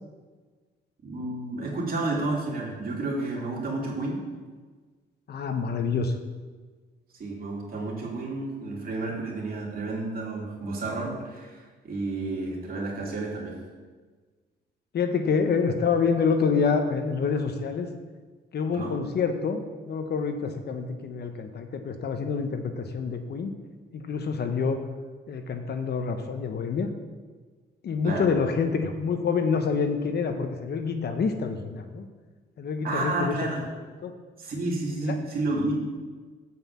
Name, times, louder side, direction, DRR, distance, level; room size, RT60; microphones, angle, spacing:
voice 1, 1.0-4.2 7.2-13.5 18.7-18.9 28.0-28.3 32.8-33.6 34.4-35.7, right 2 dB, 50° right, -3 dB, 3.1 m, -31 dB
voice 2, 5.3-6.1 14.9-17.9 18.5-23.5 23.9-24.8 25.3-26.9 27.8-32.1 32.6-33.4 34.0-34.1 35.0-35.2, left 5 dB, 55° left, 7 dB, 1.0 m, -27 dB
7.9 x 5.7 x 7.3 m, 1.4 s
cardioid pair, 90°, 20 cm